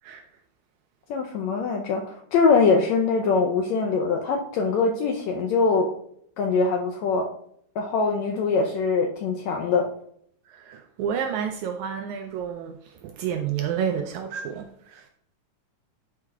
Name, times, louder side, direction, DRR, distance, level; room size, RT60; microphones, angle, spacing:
voice 1, 1.1-5.9 6.4-7.3 7.7-9.9, left 4 dB, 90° left, 1.5 m, -23 dB
voice 2, 10.5-12.7 13.0-15.1, right 8 dB, 85° right, 1.7 m, -30 dB
11.0 x 4.8 x 2.3 m
omnidirectional pair, 3.9 m